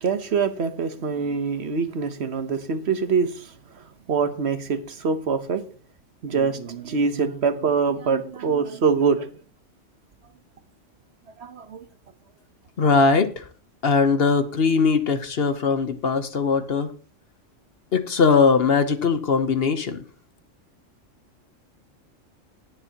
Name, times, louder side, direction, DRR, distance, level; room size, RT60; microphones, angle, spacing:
voice 1, 0.0-5.6 6.2-9.3 11.4-11.9, right 5 dB, 60° right, 1.2 m, -24 dB
voice 2, 12.8-13.4 13.8-16.9 17.9-20.0, left 5 dB, 55° left, 1.1 m, -20 dB
19.0 x 7.1 x 2.9 m
omnidirectional pair, 1.3 m